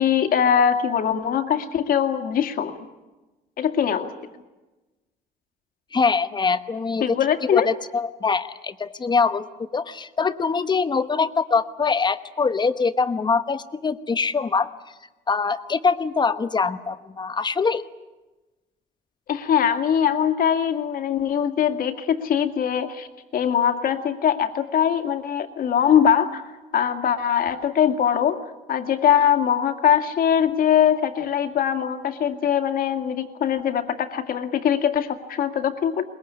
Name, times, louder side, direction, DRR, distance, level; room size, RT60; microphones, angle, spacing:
voice 1, 0.0-2.7 3.6-4.1 7.0-7.7 19.3-23.1 23.3-26.4 26.7-28.4 28.7-36.1, left 8 dB, 60° left, 7 dB, 2.1 m, -22 dB
voice 2, 5.9-7.2 7.5-14.7 15.3-17.8, left 4 dB, 25° left, 11 dB, 1.1 m, -23 dB
22.5 x 20.5 x 9.8 m, 1.2 s
cardioid pair, 110°, 17 cm